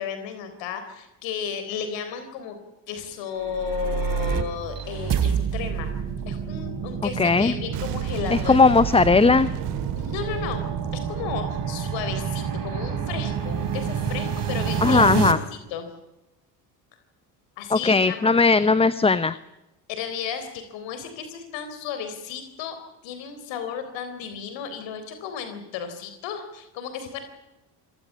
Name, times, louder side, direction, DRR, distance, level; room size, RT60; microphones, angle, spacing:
voice 1, 0.0-2.6 2.9-5.9 6.3-8.7 10.0-10.6 10.9-15.4 15.7-15.9 17.6-18.3 19.9-22.8 23.0-27.2, left 7 dB, 70° left, 8 dB, 3.9 m, -33 dB
sound 1, 3.3-15.3, right 7 dB, 45° right, 3.5 m, -28 dB
voice 2, 7.2-7.5 8.3-9.5 14.8-15.4 17.7-19.4, left 4 dB, 10° left, 15 dB, 0.8 m, -18 dB
Boom, 7.7-12.6, right 11 dB, 85° right, 2.1 m, -34 dB
27.5 x 15.0 x 8.5 m, 0.98 s
supercardioid pair, 80°, 46 cm